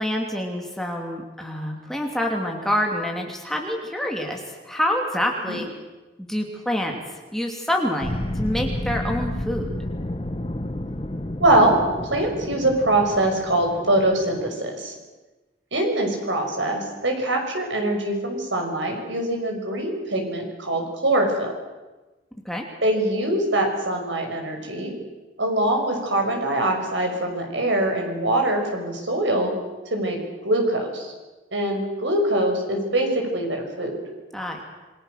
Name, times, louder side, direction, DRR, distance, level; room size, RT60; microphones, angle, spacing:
voice 1, 0.0-4.4 4.7-5.7 6.2-7.0 7.3-9.7 22.4-22.6 34.3-34.6, equal, ahead, 1 dB, 2.9 m, -26 dB
sound 1, 8.0-14.5, left 1 dB, 30° left, 1.2 m, -31 dB
voice 2, 11.4-11.8 12.1-14.9 15.7-21.5 22.8-24.9 25.4-29.5 29.9-30.2 30.4-31.1 31.5-34.0, right 1 dB, 85° right, 2 dB, 6.0 m, -23 dB
27.5 x 22.5 x 6.6 m, 1.2 s
head